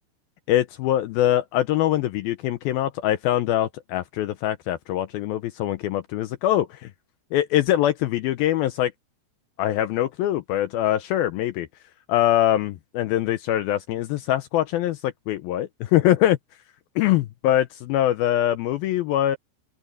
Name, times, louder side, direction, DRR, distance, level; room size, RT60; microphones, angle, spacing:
voice 1, 0.5-6.9 7.3-8.9 9.6-11.7 12.1-16.4 17.0-19.4, left 13 dB, 85° left, 2.2 m, -23 dB
open air
omnidirectional pair, 5.0 m